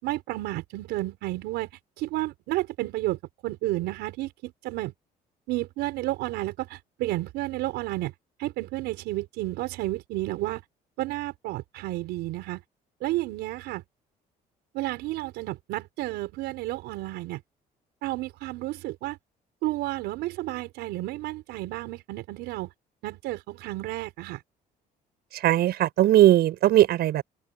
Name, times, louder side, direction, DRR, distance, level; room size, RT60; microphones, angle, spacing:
voice 1, 0.0-1.7 2.0-4.9 5.5-8.1 8.4-10.6 11.0-12.6 13.0-13.8 14.7-17.4 18.0-19.2 19.6-22.7 23.0-24.4, right 18 dB, 90° right, 5.5 m, -31 dB
voice 2, 25.3-27.2, right 13 dB, 70° right, 7.4 m, -19 dB
open air
cardioid pair, 110°, 17 cm